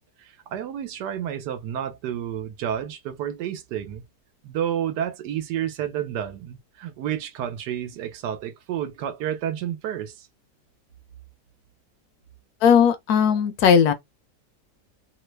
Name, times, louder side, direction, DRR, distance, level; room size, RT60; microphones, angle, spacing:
voice 1, 0.2-4.0 4.4-10.3, right 10 dB, 85° right, 1.2 m, -30 dB
voice 2, 12.6-13.9, left 7 dB, 70° left, 1.0 m, -17 dB
3.1 x 2.1 x 3.2 m
omnidirectional pair, 1.8 m